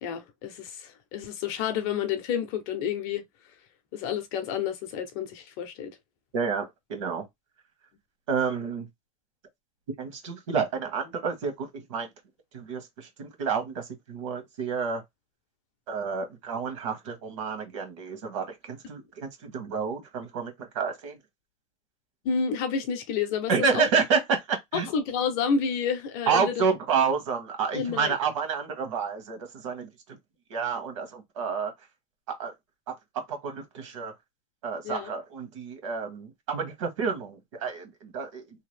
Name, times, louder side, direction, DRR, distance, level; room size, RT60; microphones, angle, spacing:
voice 1, 0.0-3.2 3.9-5.9 22.2-23.8 24.7-26.6 27.7-28.1 34.8-35.1, left 6 dB, 35° left, 0.6 m, -30 dB
voice 2, 6.3-7.2 8.3-8.9 10.0-12.1 12.5-15.0 15.9-21.2 23.5-24.9 26.3-29.9 30.5-31.7 32.3-32.5 32.9-33.0 33.3-34.1 34.6-38.7, right 5 dB, 65° right, 1.2 m, -29 dB
2.8 x 2.4 x 3.2 m
supercardioid pair, 180°, 17 cm